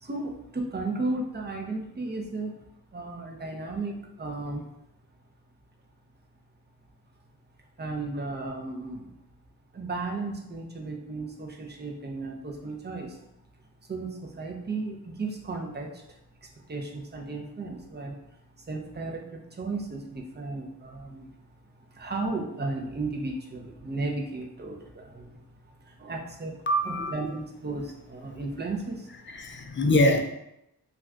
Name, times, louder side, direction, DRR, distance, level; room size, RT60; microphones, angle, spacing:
voice 1, 0.0-2.6 2.9-4.7 7.8-9.1 9.7-13.2 13.9-15.9 16.7-18.2 18.7-21.3 21.9-25.4 25.9-26.6 26.9-29.1, right 3 dB, 25° right, 1 dB, 0.6 m, -34 dB
voice 2, 26.7-27.1 29.2-30.2, left 1 dB, 30° left, 4 dB, 0.4 m, -23 dB
2.5 x 2.4 x 3.3 m, 0.84 s
cardioid pair, 65°, 40 cm